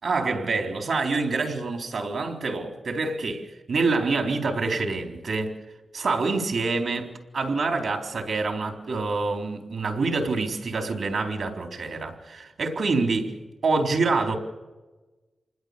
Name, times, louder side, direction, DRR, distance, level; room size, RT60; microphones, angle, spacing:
voice 1, 0.0-5.6 5.9-13.4 13.6-14.4, right 3 dB, 75° right, 3.9 m, -26 dB
27.0 x 20.5 x 6.9 m
cardioid pair, 75°, 0 cm